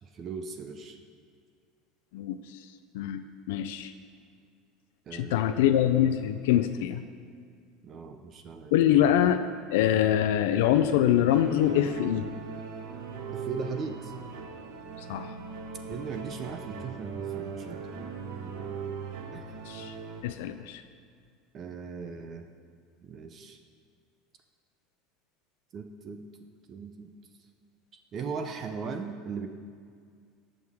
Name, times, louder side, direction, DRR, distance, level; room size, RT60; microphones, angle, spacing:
voice 1, 0.0-1.0 5.1-5.8 7.8-9.1 13.3-14.1 15.9-18.1 18.4-18.7 19.3-19.5 21.5-22.5 23.0-23.6 25.7-26.2 26.7-27.1 28.1-29.5, right 5 dB, 25° right, 6 dB, 0.6 m, -38 dB
voice 2, 2.9-3.9 5.1-7.0 8.7-9.4 9.7-12.3 15.1-15.3 19.7-19.9 20.2-20.8, left 11 dB, 80° left, 9 dB, 0.4 m, -24 dB
sound 1, 11.3-20.2, right 5 dB, 65° right, 1.2 m, -39 dB
19.0 x 6.4 x 3.6 m, 2.1 s
cardioid pair, 170°, 0 cm